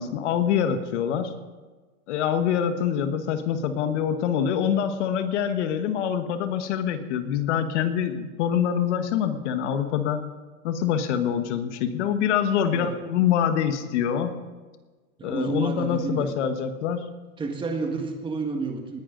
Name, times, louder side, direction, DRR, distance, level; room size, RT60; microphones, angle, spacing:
voice 1, 0.0-1.3 2.1-10.2 10.6-14.3 15.2-17.1, left 8 dB, 50° left, 9 dB, 1.3 m, -25 dB
voice 2, 15.2-16.3 17.4-19.0, right 4 dB, 10° right, 3 dB, 1.6 m, -30 dB
19.5 x 10.5 x 3.9 m, 1.3 s
supercardioid pair, 150°, 44 cm